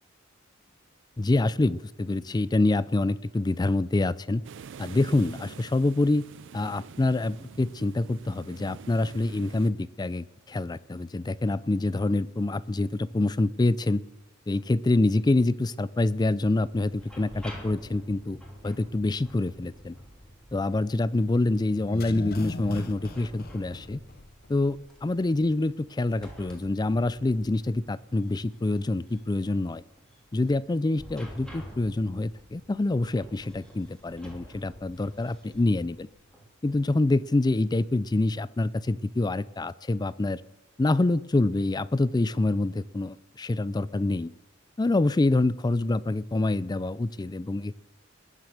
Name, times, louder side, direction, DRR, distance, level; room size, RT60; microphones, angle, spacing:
voice 1, 1.2-4.4 4.8-6.2 6.5-14.0 14.5-18.4 18.6-19.9 20.5-24.0 24.5-29.8 30.3-36.1 36.6-40.4 40.8-44.3 44.8-47.8, left 2 dB, 20° left, 19 dB, 0.4 m, -26 dB
sound 1, 4.4-9.7, right 6 dB, 60° right, 0.4 m, -46 dB
sound 2, 16.7-36.5, equal, 5° left, 3.3 m, -49 dB
sound 3, 21.7-24.5 24.8-24.9, left 2 dB, 50° left, 0.8 m, -38 dB
21.0 x 7.7 x 6.6 m, 1.0 s
head